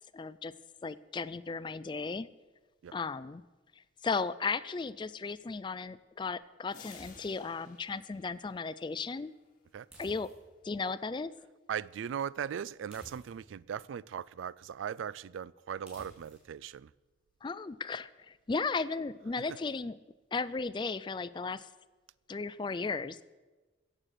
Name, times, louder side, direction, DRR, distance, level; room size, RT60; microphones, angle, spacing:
voice 1, 0.1-0.5 0.8-2.3 2.9-3.4 4.0-9.3 10.0-10.3 10.6-11.3 17.4-20.0 20.3-21.7 22.3-23.2, left 4 dB, 25° left, 0.3 m, -35 dB
sound 1, 6.7-9.5, left 6 dB, 40° left, 1.2 m, -56 dB
sound 2, 6.9-7.6 9.9-10.7 12.9-13.6 15.9-16.5, equal, 10° right, 4.6 m, -54 dB
voice 2, 11.7-16.9, right 8 dB, 80° right, 0.3 m, -38 dB
16.0 x 7.6 x 6.5 m
head